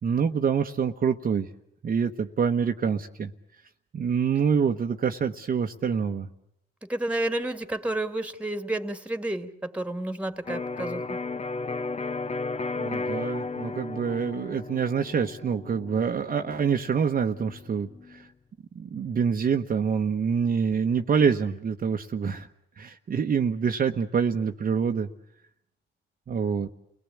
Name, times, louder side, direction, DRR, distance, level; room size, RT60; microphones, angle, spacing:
voice 1, 0.0-1.5 1.8-3.3 3.9-6.3 12.8-18.3 18.7-22.5 22.8-25.1 26.3-26.7, right 6 dB, 45° right, 4 dB, 1.1 m, -26 dB
voice 2, 6.9-11.2, right 1 dB, 5° right, 9 dB, 2.1 m, -30 dB
Electric guitar, 10.5-18.2, left 3 dB, 35° left, 0.9 m, -34 dB
29.5 x 18.5 x 8.5 m, 0.76 s
cardioid pair, 90°, 20 cm